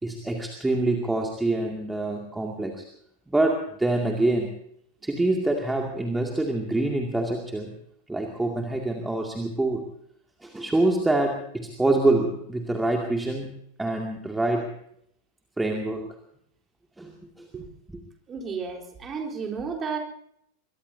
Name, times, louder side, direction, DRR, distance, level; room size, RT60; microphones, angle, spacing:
voice 1, 0.0-2.8 3.3-4.5 5.0-7.7 8.1-9.9 10.4-13.5 13.8-14.8 15.6-16.1 17.0-17.1 17.4-17.5, right 2 dB, 5° right, 1 dB, 2.4 m, -25 dB
voice 2, 18.3-20.0, right 5 dB, 20° right, 2 dB, 4.1 m, -32 dB
23.0 x 22.5 x 2.8 m, 0.69 s
figure-of-eight pair, 90°, 0 cm